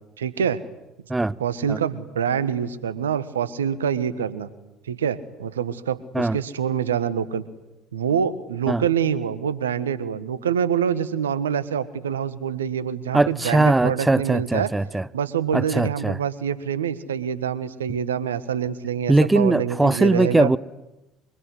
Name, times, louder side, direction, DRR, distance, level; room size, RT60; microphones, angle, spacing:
voice 1, 0.2-0.6 1.4-4.5 4.9-7.4 7.9-14.7 15.1-20.5, right 8 dB, 85° right, 1.4 m, -26 dB
voice 2, 13.1-15.1 15.5-16.2 19.1-20.6, right 2 dB, 15° right, 1.0 m, -20 dB
24.5 x 24.0 x 9.8 m
hypercardioid pair, 60°, 0 cm